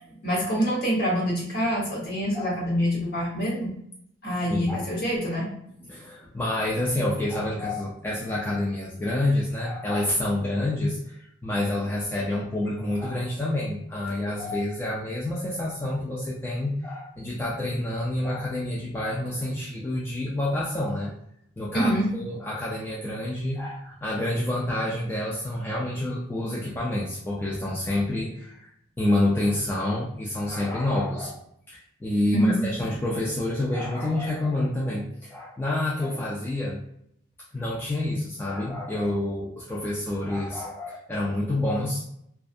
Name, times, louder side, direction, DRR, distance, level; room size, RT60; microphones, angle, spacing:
voice 1, 0.2-3.7 4.2-5.5 21.7-22.0 32.3-32.6, equal, 50° left, -4 dB, 1.0 m, -25 dB
voice 2, 4.5-4.9 5.8-21.1 21.6-28.7 29.0-31.4 31.7-36.8 37.5-42.0, left 1 dB, 10° left, -5 dB, 0.3 m, -28 dB
2.6 x 2.2 x 2.4 m, 0.72 s
head